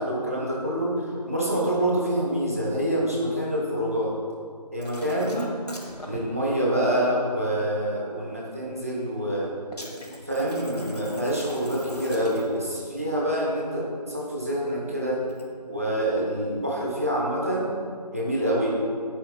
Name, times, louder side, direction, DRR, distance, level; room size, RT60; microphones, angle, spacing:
voice 1, 0.0-4.1 4.7-5.4 6.0-9.5 10.2-15.2 15.7-17.7 18.1-18.8, right 1 dB, 20° right, -5 dB, 1.1 m, -26 dB
sound 1, 4.8-6.2 9.7-12.7 15.2-15.5, left 1 dB, 70° left, 1.7 m, -40 dB
11.0 x 9.5 x 2.3 m, 2.1 s
figure-of-eight pair, 175°, 21 cm